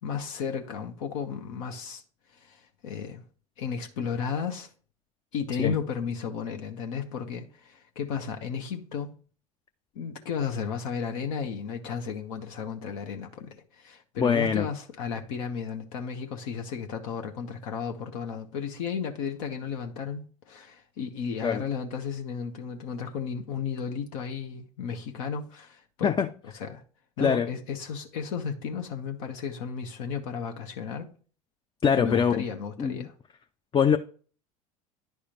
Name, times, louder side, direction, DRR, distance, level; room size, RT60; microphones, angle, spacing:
voice 1, 0.0-2.0 2.3-3.2 3.6-4.7 5.3-9.1 9.9-26.2 26.5-26.8 27.2-31.1 31.9-33.1, left 6 dB, 65° left, 1.0 m, -34 dB
voice 2, 14.2-14.7 21.4-21.6 26.0-26.3 27.2-27.5 31.8-32.4 32.8-33.1 33.7-34.0, left 7 dB, 25° left, 0.5 m, -23 dB
10.5 x 4.8 x 2.9 m
hypercardioid pair, 75°, 19 cm